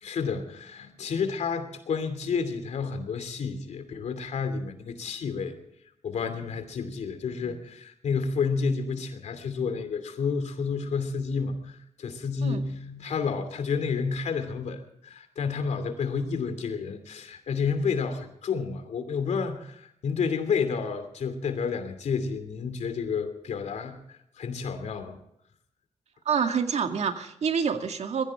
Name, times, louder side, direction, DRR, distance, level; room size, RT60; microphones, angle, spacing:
voice 1, 0.0-5.5 6.0-25.2, left 5 dB, 80° left, 9 dB, 2.8 m, -30 dB
voice 2, 26.3-28.3, right 6 dB, 70° right, 6 dB, 2.1 m, -27 dB
21.5 x 16.0 x 3.7 m, 0.74 s
cardioid pair, 65°, 12 cm